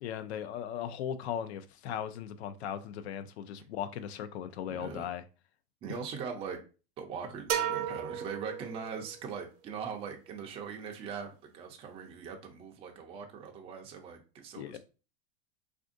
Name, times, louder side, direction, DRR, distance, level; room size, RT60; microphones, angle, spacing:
voice 1, 0.0-5.2 14.6-14.8, left 9 dB, 80° left, 12 dB, 0.5 m, -38 dB
voice 2, 4.8-5.1 5.8-6.6 7.0-14.8, right 6 dB, 20° right, 2 dB, 0.4 m, -41 dB
sound 1, 7.5-9.2, right 9 dB, 60° right, 0.7 m, -34 dB
3.4 x 2.5 x 2.5 m, 0.33 s
supercardioid pair, 135°, 32 cm